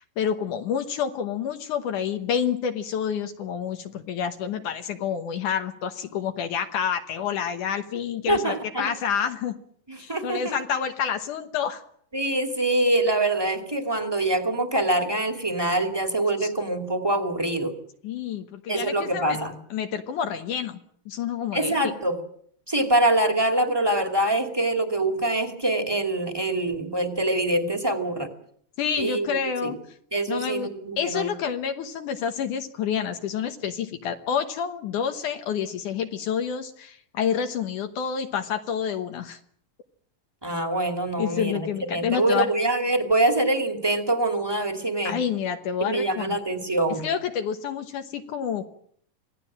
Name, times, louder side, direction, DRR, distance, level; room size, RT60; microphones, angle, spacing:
voice 1, 0.2-9.6 10.0-11.8 16.4-16.5 18.0-19.4 19.7-20.8 21.1-21.9 28.8-29.8 30.3-39.4 41.2-42.5 45.0-46.4 47.0-48.7, left 8 dB, 70° left, 6 dB, 2.6 m, -28 dB
voice 2, 8.3-8.9 9.9-10.5 12.1-17.7 18.7-19.5 21.5-22.2 22.7-28.3 29.0-29.3 29.6-29.7 30.1-31.3 40.4-45.2 45.8-47.1, right 1 dB, 10° right, 6 dB, 2.1 m, -24 dB
26.0 x 18.0 x 7.6 m, 0.63 s
omnidirectional pair, 3.8 m